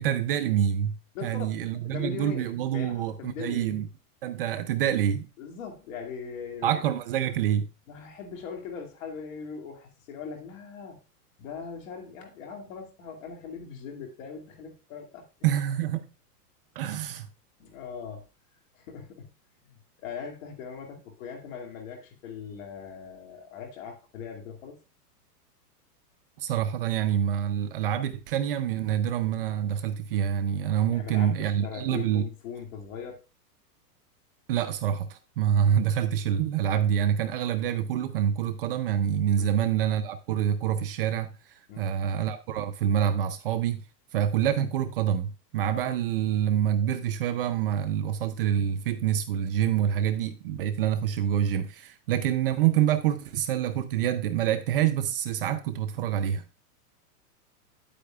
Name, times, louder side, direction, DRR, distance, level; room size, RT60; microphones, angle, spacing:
voice 1, 0.0-1.0 1.2-3.9 4.2-5.3 6.6-7.7 15.4-16.1 16.8-17.3 26.4-32.2 34.5-43.8 44.1-56.4, right 9 dB, 35° right, 0.5 m, -26 dB
voice 2, 1.1-1.5 1.8-3.8 5.4-6.8 7.9-11.0 11.4-15.3 17.6-18.2 18.7-19.3 19.6-24.8 30.9-33.2 39.4-39.5 41.7-41.9, left 6 dB, 55° left, 2.4 m, -40 dB
9.5 x 8.4 x 2.3 m
supercardioid pair, 155°, 47 cm